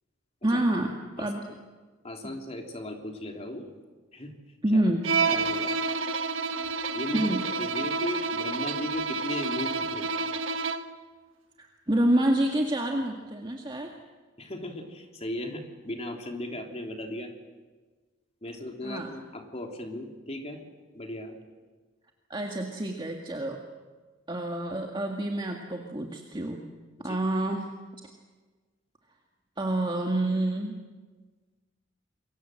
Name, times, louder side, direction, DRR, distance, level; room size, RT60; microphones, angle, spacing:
voice 1, 0.4-1.4 2.2-2.3 4.6-5.1 7.1-7.4 11.6-13.9 18.8-19.1 22.3-23.6 24.3-26.6 27.0-27.7 29.6-30.8, right 1 dB, 25° right, 1 dB, 1.9 m, -28 dB
voice 2, 2.0-3.7 4.1-4.3 4.7-4.8 5.3-5.7 6.9-10.1 14.4-17.3 18.4-20.6 20.9-21.4 27.0-27.2, left 1 dB, 30° left, 3 dB, 3.2 m, -36 dB
Bowed string instrument, 5.0-11.0, right 4 dB, 70° right, 1.3 m, -29 dB
28.5 x 23.0 x 7.8 m, 1.4 s
head